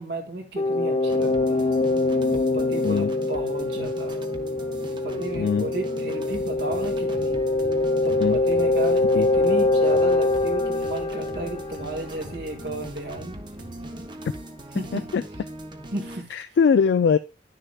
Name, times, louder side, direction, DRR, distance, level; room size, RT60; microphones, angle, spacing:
voice 1, 0.0-1.7 2.3-4.2 4.9-7.5 8.0-13.4 13.8-14.0 14.7-15.0 15.9-16.3, right 2 dB, 70° right, 3 dB, 1.9 m, -34 dB
sound 1, 0.6-12.2, left 2 dB, 35° left, 0.7 m, -24 dB
sound 2, 1.1-16.2, right 1 dB, 25° right, 0.7 m, -40 dB
voice 2, 5.3-5.7 8.1-8.4 9.1-9.3 14.9-15.2 16.3-17.2, left 6 dB, 70° left, 11 dB, 0.3 m, -21 dB
sound 3, 6.7-14.1, right 1 dB, 85° right, 1.8 m, -46 dB
10.5 x 6.7 x 2.3 m, 0.31 s
head